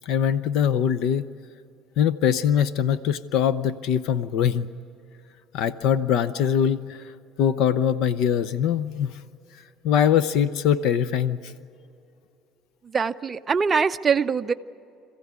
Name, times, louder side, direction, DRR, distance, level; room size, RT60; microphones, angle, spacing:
voice 1, 0.1-1.3 2.0-4.7 5.5-7.1 7.4-9.2 9.8-11.5, left 8 dB, 65° left, 14 dB, 0.7 m, -22 dB
voice 2, 12.9-14.5, right 5 dB, 20° right, 8 dB, 0.5 m, -23 dB
26.5 x 15.5 x 9.6 m, 2.6 s
cardioid pair, 150°, 0 cm